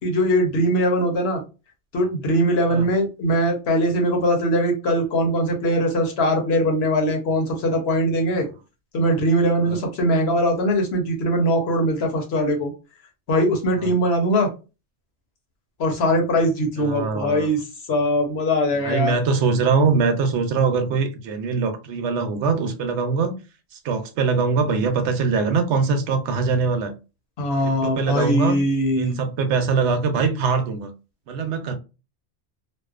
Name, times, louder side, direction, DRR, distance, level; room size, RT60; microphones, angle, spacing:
voice 1, 0.0-1.4 1.9-8.5 8.9-12.7 13.3-14.5 15.8-19.1 27.4-29.2, equal, 70° left, 1.0 m, -21 dB
voice 2, 16.8-17.5 18.8-23.3 23.8-26.9 27.6-28.6 28.9-30.9 31.3-31.7, right 4 dB, 85° right, 0.9 m, -22 dB
2.5 x 2.1 x 2.3 m
omnidirectional pair, 1.2 m